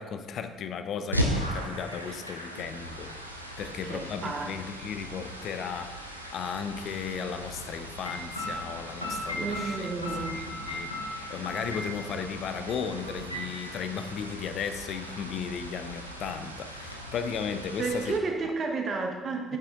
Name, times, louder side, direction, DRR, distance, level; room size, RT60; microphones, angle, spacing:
voice 1, 0.0-3.1 3.6-5.9 6.3-9.9 10.4-10.9 11.3-18.2 18.4-18.5 19.5-19.6, left 7 dB, 50° left, 9 dB, 0.4 m, -35 dB
sound 1, 1.1-18.2, equal, 90° right, 0.5 m, -38 dB
voice 2, 3.6-4.5 9.4-10.4 17.8-19.6, right 4 dB, 40° right, 3 dB, 1.0 m, -32 dB
sound 2, 8.0-12.3 12.7-12.8 13.0-13.5, left 1 dB, 90° left, 0.7 m, -37 dB
8.2 x 5.6 x 3.6 m, 1.4 s
figure-of-eight pair, 50°, 0 cm